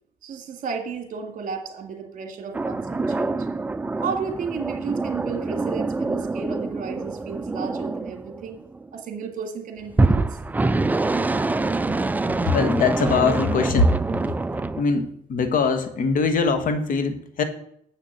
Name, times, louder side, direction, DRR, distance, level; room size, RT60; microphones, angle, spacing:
voice 1, 0.2-3.5 4.0-8.6 8.9-10.4, right 6 dB, 50° right, 5 dB, 2.1 m, -33 dB
sound 1, 2.5-8.9 9.9-14.8, right 3 dB, 10° right, 0.4 m, -25 dB
voice 2, 12.4-14.0 14.8-17.4, left 4 dB, 55° left, 8 dB, 1.5 m, -22 dB
7.4 x 6.6 x 7.7 m, 0.69 s
cardioid pair, 110°, 17 cm